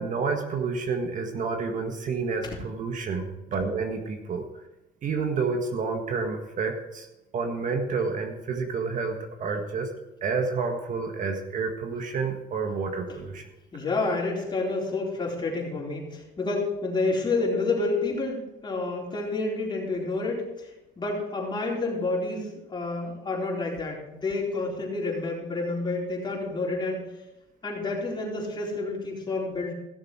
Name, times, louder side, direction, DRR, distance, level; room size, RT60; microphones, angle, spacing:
voice 1, 0.0-4.4 5.0-7.1 7.3-9.9 10.2-13.4, right 4 dB, 50° right, 4 dB, 1.6 m, -29 dB
voice 2, 13.7-20.7 21.0-27.1 27.6-29.7, left 3 dB, 25° left, -3 dB, 4.2 m, -29 dB
16.0 x 6.9 x 4.8 m, 0.95 s
cardioid pair, 110°, 17 cm